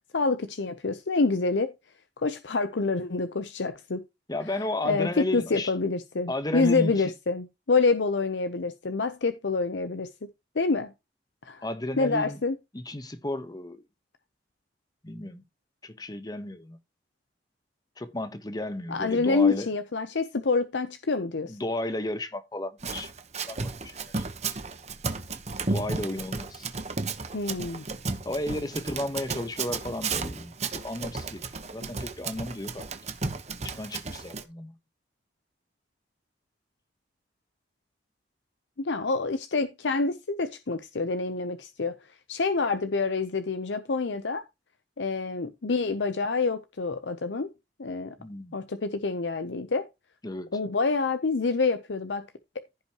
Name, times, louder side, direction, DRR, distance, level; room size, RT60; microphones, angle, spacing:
voice 1, 0.1-1.7 2.2-4.0 4.8-10.1 10.5-10.9 11.4-11.6 12.0-12.6 18.9-21.6 27.3-27.8 38.8-42.0 42.3-44.4 45.0-47.5 47.8-48.2 48.5-49.9 50.5-52.3 52.5-52.6, left 4 dB, 85° left, 0.7 m, -27 dB
voice 2, 4.3-5.7 6.3-7.1 11.6-12.4 12.7-13.8 15.0-15.4 15.8-16.8 18.0-19.7 21.5-23.1 23.5-24.2 25.7-26.7 28.2-30.5 30.8-32.9 33.6-34.7 48.2-48.6 50.2-50.6, left 1 dB, 20° left, 1.1 m, -33 dB
Run, 22.8-34.4, right 4 dB, 40° right, 1.1 m, -34 dB
15.0 x 5.4 x 3.0 m
head